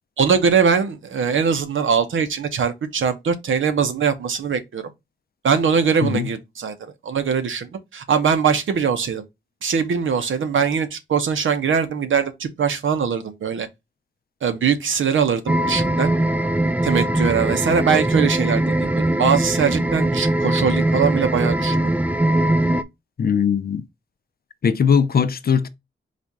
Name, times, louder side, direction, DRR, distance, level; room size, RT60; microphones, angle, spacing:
voice 1, 0.2-4.9 5.4-9.2 9.6-13.7 14.4-16.1 16.8-21.8, right 6 dB, 75° right, 0.8 m, -21 dB
sound 1, 15.5-22.8, right 1 dB, 5° right, 0.3 m, -21 dB
voice 2, 23.2-23.8 24.6-25.7, left 6 dB, 50° left, 0.5 m, -19 dB
4.1 x 2.4 x 4.6 m
cardioid pair, 80°, 20 cm